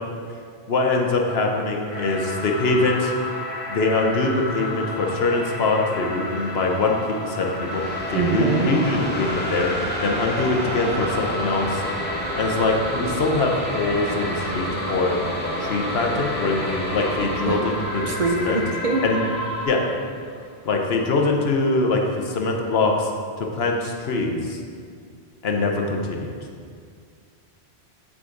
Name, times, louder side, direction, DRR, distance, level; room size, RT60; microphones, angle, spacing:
voice 1, 0.7-3.1 3.7-7.8 8.1-9.7 10.0-11.8 12.3-15.2 15.6-18.1 18.4-18.6 19.0-19.2 19.6-19.8 20.6-23.1 23.4-24.6 25.4-26.3, left 3 dB, 70° left, 2 dB, 1.1 m, -23 dB
sound 1, 1.9-19.7, left 1 dB, 45° left, 2.0 m, -32 dB
sound 2, 7.6-21.0, equal, 10° left, 1.1 m, -31 dB
voice 2, 8.1-8.7 17.5-17.7 18.1-19.0, right 3 dB, 45° right, 1 dB, 0.6 m, -23 dB
7.7 x 6.0 x 3.9 m, 2.2 s
omnidirectional pair, 1.1 m